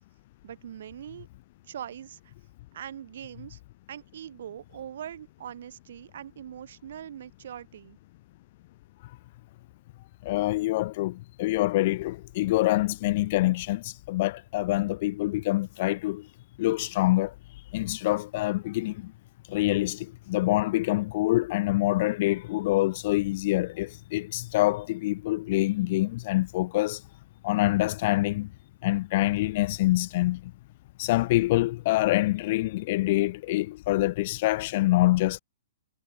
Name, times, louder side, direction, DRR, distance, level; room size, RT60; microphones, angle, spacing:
voice 1, 0.4-1.3 1.7-2.3 2.7-3.6 3.9-8.0, right 10 dB, 55° right, 3.0 m, -41 dB
voice 2, 10.2-16.3 16.6-17.3 17.7-19.1 19.5-27.0 27.4-28.5 28.8-30.5 31.0-35.4, left 18 dB, 35° left, 0.4 m, -26 dB
hypercardioid pair, 170°, 0 cm